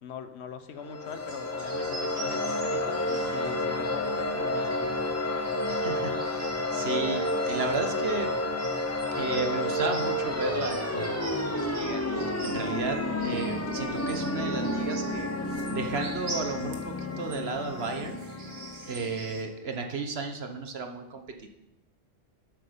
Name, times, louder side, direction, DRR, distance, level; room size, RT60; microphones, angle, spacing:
voice 1, 0.0-5.0, left 7 dB, 60° left, 10 dB, 1.1 m, -42 dB
sound 1, 0.8-19.4, left 1 dB, 15° left, 0.7 m, -30 dB
sound 2, 1.1-19.4, right 3 dB, 85° right, 2.0 m, -46 dB
voice 2, 5.7-8.3 9.2-15.3 15.7-18.2 18.9-21.6, right 4 dB, 55° right, 5 dB, 1.4 m, -34 dB
12.5 x 8.4 x 5.2 m, 0.90 s
omnidirectional pair, 1.3 m